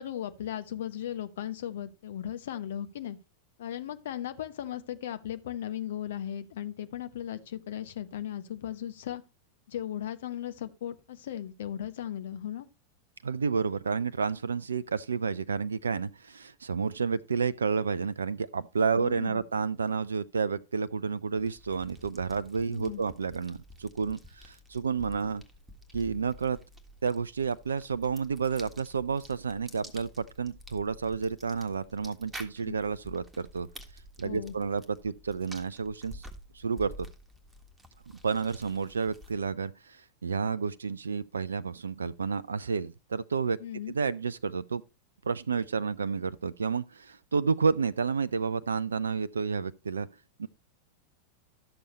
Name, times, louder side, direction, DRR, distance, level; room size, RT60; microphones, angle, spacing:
voice 1, 0.0-3.2 3.6-9.2 9.7-12.7 19.0-19.4 22.7-23.0 32.7-32.8 34.2-34.5 43.6-43.9, left 11 dB, 60° left, 1.0 m, -37 dB
voice 2, 13.2-25.4 25.9-26.6 27.0-33.7 34.2-36.3 36.5-37.1 38.2-43.6 43.9-44.8 45.2-50.1 50.4-50.5, right 5 dB, 70° right, 0.4 m, -30 dB
sound 1, 21.4-39.5, equal, 10° right, 1.5 m, -50 dB
12.5 x 6.9 x 3.0 m
figure-of-eight pair, 90°, 0 cm